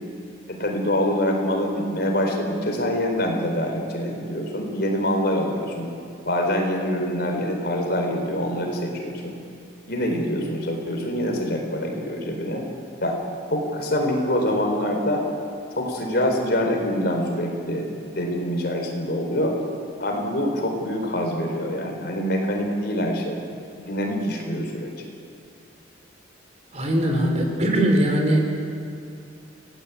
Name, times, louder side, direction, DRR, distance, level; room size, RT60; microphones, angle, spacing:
voice 1, 0.5-5.9 6.3-9.4 9.9-12.6 13.0-13.2 13.5-15.2 15.7-19.5 20.0-23.4 23.8-24.9, equal, 55° left, 2 dB, 4.4 m, -25 dB
voice 2, 26.7-28.4, right 1 dB, 35° right, 2 dB, 3.8 m, -20 dB
30.0 x 18.0 x 8.7 m, 2.5 s
head